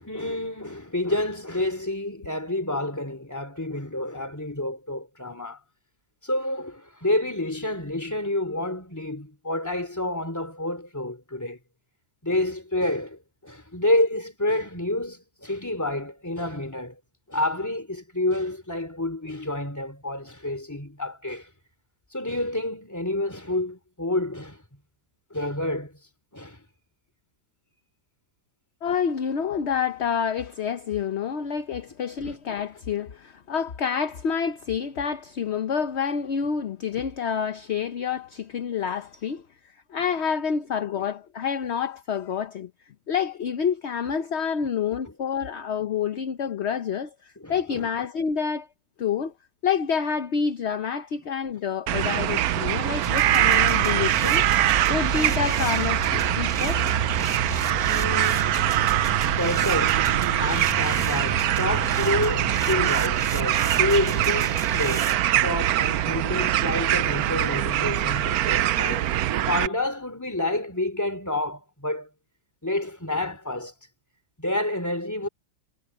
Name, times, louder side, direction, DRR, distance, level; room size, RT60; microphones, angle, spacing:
voice 1, 0.0-5.6 6.2-11.6 12.2-17.0 17.3-21.5 22.1-24.6 25.3-26.0 26.3-26.6 45.1-45.2 47.4-47.9 57.2-58.7 59.4-65.2 65.4-72.1 72.6-73.7 74.4-75.3, left 1 dB, 10° left, 3.0 m, -29 dB
voice 2, 28.8-39.4 39.9-42.7 43.1-48.7 49.0-49.3 49.6-54.4 54.9-56.8, left 7 dB, 50° left, 0.9 m, -28 dB
sound 1, 51.9-69.7, right 13 dB, 70° right, 1.0 m, -23 dB
sound 2, 53.0-65.2, right 2 dB, 35° right, 2.0 m, -32 dB
omnidirectional pair, 1.9 m